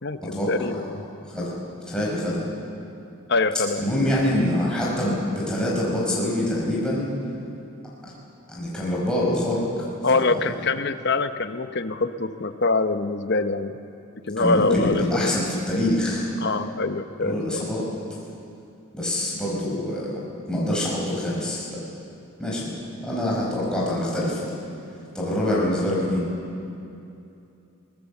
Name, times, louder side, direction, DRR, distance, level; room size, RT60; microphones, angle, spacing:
voice 1, 0.0-1.0 3.3-3.9 10.0-13.8 14.3-15.4 16.4-17.7, left 3 dB, 50° left, 9 dB, 0.9 m, -24 dB
voice 2, 1.3-1.6 1.9-2.4 3.8-7.1 8.5-9.9 10.3-10.4 14.4-16.3 17.2-17.8 18.9-20.1 20.5-21.8 22.4-22.7 23.0-24.5 25.1-26.3, left 1 dB, 5° left, -6 dB, 5.0 m, -25 dB
24.5 x 18.5 x 7.2 m, 2.7 s
head